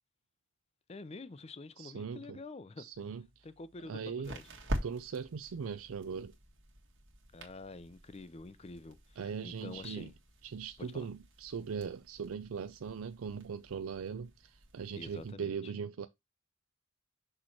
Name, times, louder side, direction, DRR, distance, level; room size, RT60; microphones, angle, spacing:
voice 1, 0.9-2.9 3.4-4.5 7.3-10.1 10.8-11.1 14.9-15.7, left 3 dB, 30° left, 0.5 m, -48 dB
voice 2, 1.8-2.4 2.8-3.4 3.8-4.3 4.8-6.3 9.2-10.1 10.4-16.1, right 6 dB, 80° right, 0.4 m, -40 dB
sound 1, 2.9-15.3, right 1 dB, 60° right, 1.9 m, -46 dB
6.3 x 3.2 x 5.8 m
head